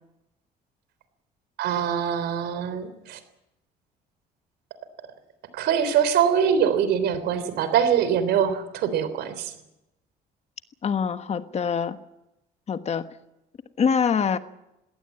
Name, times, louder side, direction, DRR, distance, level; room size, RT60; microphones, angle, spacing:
voice 1, 1.6-3.2 5.5-9.5, right 8 dB, 80° right, 12 dB, 3.5 m, -23 dB
voice 2, 10.8-12.0 12.7-13.1 13.8-14.4, left 6 dB, 40° left, 11 dB, 1.3 m, -24 dB
20.5 x 17.5 x 9.0 m, 0.88 s
cardioid pair, 110°, 17 cm